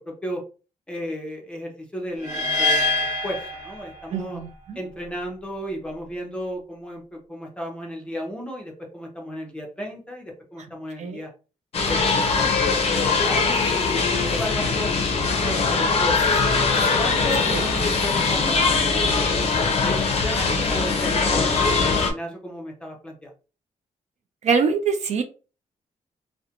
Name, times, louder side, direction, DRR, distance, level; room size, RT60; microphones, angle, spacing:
voice 1, 0.1-0.4 0.9-4.4 4.7-11.3 11.8-14.9 15.4-16.2 17.0-23.3, equal, 10° left, -1 dB, 0.7 m, -34 dB
sound 1, 2.2-4.4, left 2 dB, 25° right, 1.1 m, -25 dB
voice 2, 4.1-4.8 11.0-11.2 17.5-17.6 24.4-25.2, right 5 dB, 60° right, 8 dB, 0.4 m, -24 dB
sound 2, 11.7-22.1, left 4 dB, 50° left, 0.5 m, -21 dB
2.4 x 2.1 x 2.8 m, 0.35 s
wide cardioid pair, 140°, 13 cm